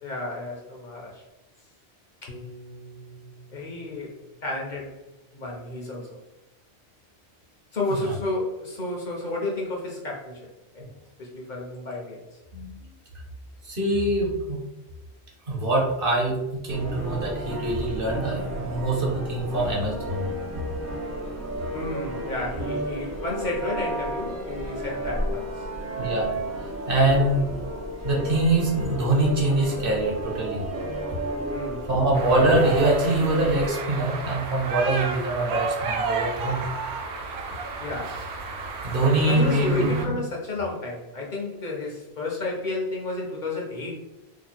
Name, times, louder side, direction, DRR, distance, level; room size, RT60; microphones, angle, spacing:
voice 1, 0.0-1.2 2.2-2.4 3.5-4.1 4.4-5.0 5.3-6.2 7.7-10.5 10.7-10.8 11.2-12.2 21.7-25.6 31.5-32.1 37.8-38.2 39.3-44.0, left 2 dB, 50° left, -2 dB, 0.8 m, -31 dB
Piano, 2.3-6.7, equal, 80° left, 1.2 m, -48 dB
voice 2, 13.6-14.6 15.5-20.3 26.0-26.3 26.9-27.5 28.0-30.6 31.9-36.7 38.8-40.2, right 2 dB, 60° right, -2 dB, 1.1 m, -24 dB
sound 1, 16.7-33.7, right 1 dB, 25° right, 0.4 m, -32 dB
sound 2, 32.1-40.1, right 4 dB, 80° right, 0.8 m, -32 dB
2.8 x 2.2 x 4.1 m, 0.99 s
omnidirectional pair, 1.1 m